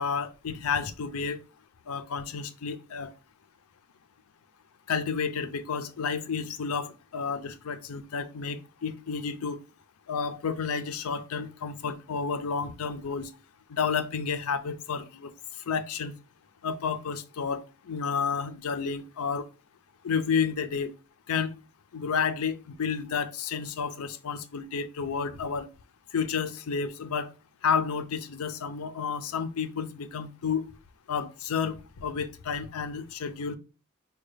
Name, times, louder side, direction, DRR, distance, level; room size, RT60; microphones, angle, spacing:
voice 1, 0.0-1.4 1.9-3.1 4.9-9.6 10.1-13.3 13.7-15.3 15.7-16.1 16.6-19.5 20.0-20.9 21.3-21.5 21.9-25.7 26.1-27.3 27.6-30.6 31.1-33.6, left 6 dB, 90° left, 0.5 m, -31 dB
4.6 x 2.3 x 3.2 m
head